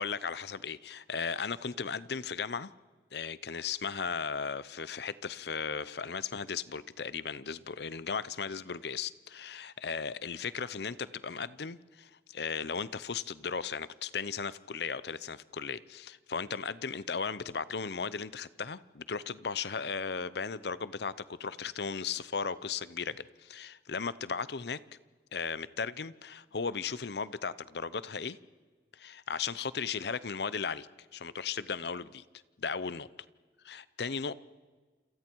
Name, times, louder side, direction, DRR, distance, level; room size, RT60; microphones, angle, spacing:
voice 1, 0.0-2.7 3.1-21.1 21.4-24.8 25.3-28.4 28.9-30.9 31.1-32.2 32.6-33.1 33.6-34.3, left 5 dB, 70° left, 17 dB, 0.7 m, -36 dB
28.5 x 27.0 x 4.6 m, 1.4 s
head